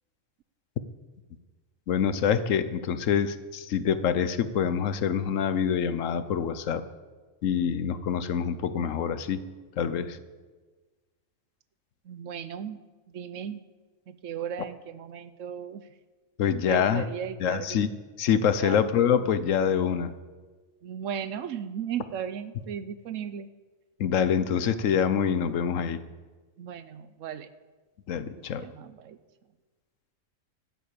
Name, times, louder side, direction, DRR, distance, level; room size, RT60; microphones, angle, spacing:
voice 1, 1.9-6.8 7.4-9.4 9.8-10.2 16.4-17.0 17.4-17.9 18.2-20.1 24.0-26.0 28.1-28.7, left 8 dB, 70° left, 13 dB, 1.1 m, -25 dB
voice 2, 12.0-12.8 13.1-13.6 14.1-15.9 16.7-17.8 18.6-18.8 20.8-23.5 26.6-27.5 28.3-29.2, right 8 dB, 70° right, 13 dB, 1.0 m, -36 dB
13.5 x 7.8 x 8.3 m, 1.3 s
omnidirectional pair, 1.4 m